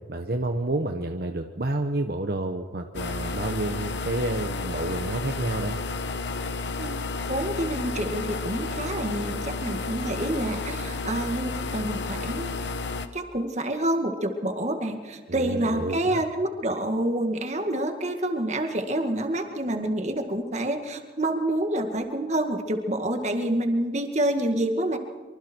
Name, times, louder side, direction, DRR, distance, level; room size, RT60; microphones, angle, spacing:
voice 1, 0.1-5.8 15.3-16.2, right 2 dB, 60° right, 5 dB, 1.2 m, -29 dB
sound 1, 2.9-13.1, left 3 dB, 85° left, 1.3 m, -32 dB
voice 2, 7.3-12.6 13.1-25.0, right 1 dB, 40° right, 5 dB, 2.1 m, -27 dB
25.0 x 24.5 x 4.7 m, 1.5 s
head